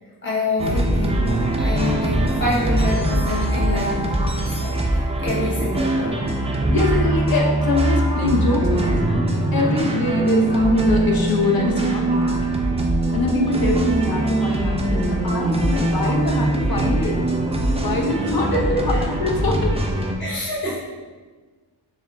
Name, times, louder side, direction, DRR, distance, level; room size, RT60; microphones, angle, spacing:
voice 1, 0.2-6.3 18.5-19.1 20.2-20.8, left 2 dB, 25° left, -7 dB, 0.9 m, -27 dB
sound 1, 0.6-20.2, right 2 dB, 15° right, 0.4 m, -21 dB
voice 2, 6.7-9.3 9.5-12.5 13.1-17.2 17.8-18.6 19.2-19.9, left 3 dB, 50° left, 0 dB, 0.8 m, -24 dB
6.8 x 2.5 x 2.2 m, 1.4 s
wide cardioid pair, 70°, 45 cm